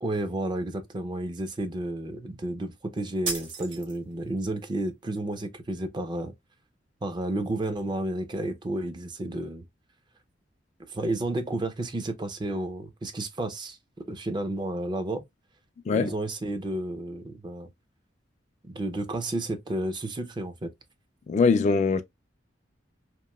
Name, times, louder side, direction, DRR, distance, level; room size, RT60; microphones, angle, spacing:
voice 1, 0.0-6.3 7.0-9.7 10.9-13.8 14.1-15.2 15.9-17.7 18.6-20.7, right 1 dB, 25° right, 0.4 m, -31 dB
sound 1, 3.2-4.3, right 3 dB, 75° right, 1.5 m, -34 dB
voice 2, 21.3-22.0, left 4 dB, 40° left, 0.3 m, -22 dB
2.9 x 2.6 x 2.2 m
head